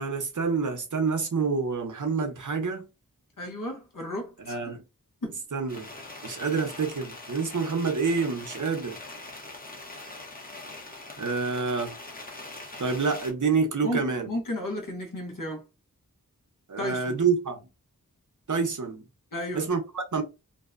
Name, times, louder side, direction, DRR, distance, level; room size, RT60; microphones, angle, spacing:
voice 1, 0.0-2.9 4.5-4.8 5.5-5.9 6.2-9.0 11.2-12.0 12.8-14.3 16.7-17.6 18.5-19.0 19.5-20.2, right 5 dB, 55° right, 0.7 m, -27 dB
voice 2, 3.4-4.6 5.2-5.4 13.8-15.6 16.8-17.2 19.3-19.7, left 1 dB, 65° left, 0.8 m, -33 dB
sound 1, 5.7-13.3, left 2 dB, 25° left, 0.7 m, -42 dB
2.6 x 2.1 x 2.4 m
wide cardioid pair, 50°, 35 cm